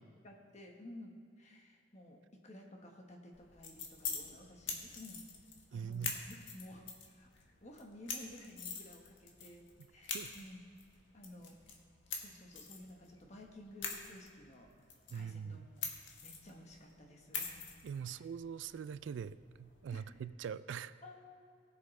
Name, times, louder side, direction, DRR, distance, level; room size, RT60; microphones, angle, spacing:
voice 1, 0.2-5.2 5.7-10.6 11.1-11.6 12.1-14.7 15.1-15.9 16.2-17.7 18.0-18.2 19.9-20.2 21.0-21.5, left 1 dB, 35° left, 1 dB, 1.3 m, -54 dB
sound 1, 3.3-20.2, left 5 dB, 80° left, 1.5 m, -46 dB
voice 2, 5.7-6.2 10.1-10.3 15.1-15.7 17.8-20.9, right 7 dB, 75° right, 15 dB, 0.3 m, -43 dB
20.0 x 7.3 x 3.3 m, 2.3 s
head